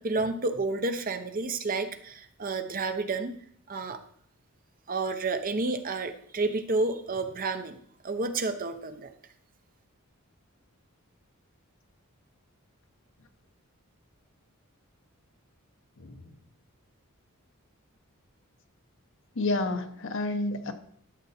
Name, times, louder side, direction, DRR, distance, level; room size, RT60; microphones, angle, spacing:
voice 1, 0.0-3.3 3.7-4.0 4.9-7.8 8.0-9.1, right 3 dB, 40° right, 8 dB, 0.8 m, -30 dB
voice 2, 16.0-16.3 19.3-20.7, left 2 dB, 60° left, 7 dB, 1.0 m, -30 dB
12.5 x 6.8 x 4.3 m, 0.63 s
head